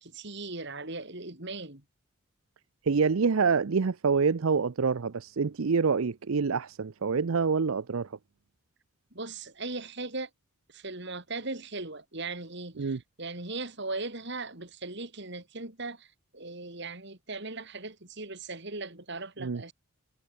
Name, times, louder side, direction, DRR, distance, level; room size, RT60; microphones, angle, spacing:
voice 1, 0.0-1.8 9.1-10.3 10.7-16.1 16.3-19.7, right 3 dB, 50° right, 3.3 m, -38 dB
voice 2, 2.8-8.2 12.8-13.0 19.4-19.6, right 5 dB, 70° right, 0.6 m, -26 dB
head